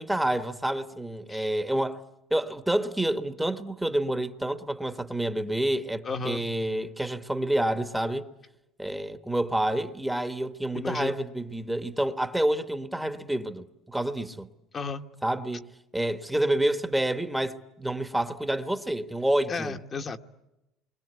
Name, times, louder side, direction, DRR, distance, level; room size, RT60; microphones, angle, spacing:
voice 1, 0.0-2.0 2.3-8.3 8.8-14.5 15.2-19.8, right 1 dB, 5° right, 1.2 m, -28 dB
voice 2, 6.0-6.4 10.7-11.1 14.7-15.0 19.5-20.2, left 4 dB, 30° left, 1.2 m, -33 dB
29.0 x 23.5 x 8.1 m
cardioid pair, 120°, 0 cm